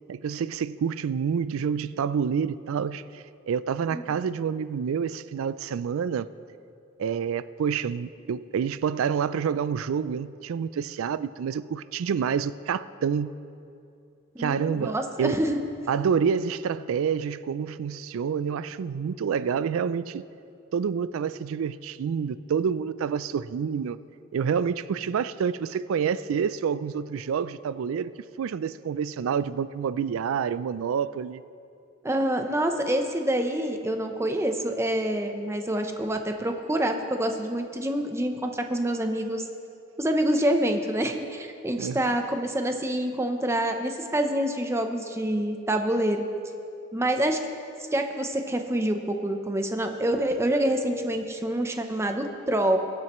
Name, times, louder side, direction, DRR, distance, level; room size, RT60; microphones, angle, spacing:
voice 1, 0.1-6.3 7.0-13.3 14.4-15.4 15.9-20.2 20.7-24.0 24.3-28.1 28.4-31.4 41.8-42.1, right 7 dB, 70° right, 16 dB, 0.3 m, -28 dB
voice 2, 14.3-15.6 32.0-39.4 40.0-46.3 46.9-47.4 47.9-52.8, right 1 dB, 15° right, 5 dB, 0.7 m, -26 dB
22.0 x 7.5 x 3.1 m, 2.6 s
head